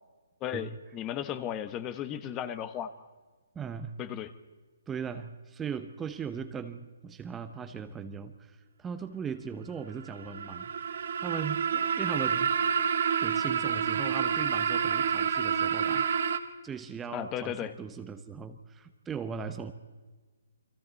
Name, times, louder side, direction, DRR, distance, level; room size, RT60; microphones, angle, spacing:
voice 1, 0.4-2.9 4.0-4.3 17.1-17.7, left 10 dB, 20° left, 13 dB, 1.1 m, -35 dB
voice 2, 3.5-4.0 4.9-10.7 11.2-12.5 13.2-16.4 16.6-19.7, right 6 dB, 10° right, 8 dB, 0.9 m, -38 dB
sound 1, 10.0-16.4, right 7 dB, 60° right, 2.1 m, -28 dB
30.0 x 22.5 x 4.1 m, 1.4 s
hypercardioid pair, 160°, 0 cm